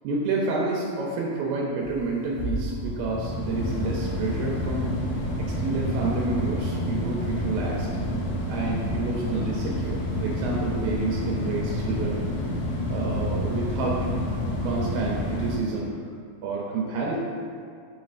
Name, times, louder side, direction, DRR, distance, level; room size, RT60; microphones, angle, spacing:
voice 1, 0.0-4.9 5.4-7.9 8.5-12.2 12.9-14.0 14.6-15.9 16.4-17.2, right 3 dB, 80° right, -3 dB, 1.8 m, -29 dB
sound 1, 1.8-15.6, left 1 dB, 75° left, 1.6 m, -29 dB
5.5 x 3.1 x 2.4 m, 2.2 s
omnidirectional pair, 3.5 m